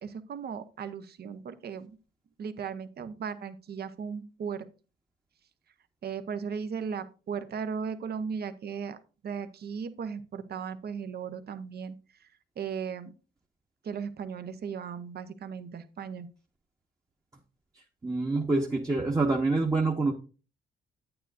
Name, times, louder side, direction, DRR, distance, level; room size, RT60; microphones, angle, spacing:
voice 1, 0.0-2.0 2.4-4.7 6.0-9.0 9.2-11.9 12.6-13.1 13.8-16.3, right 6 dB, 55° right, 11 dB, 0.9 m, -36 dB
voice 2, 18.0-20.1, right 3 dB, 20° right, -1 dB, 1.0 m, -26 dB
9.0 x 9.0 x 2.6 m, 0.34 s
cardioid pair, 90°, 20 cm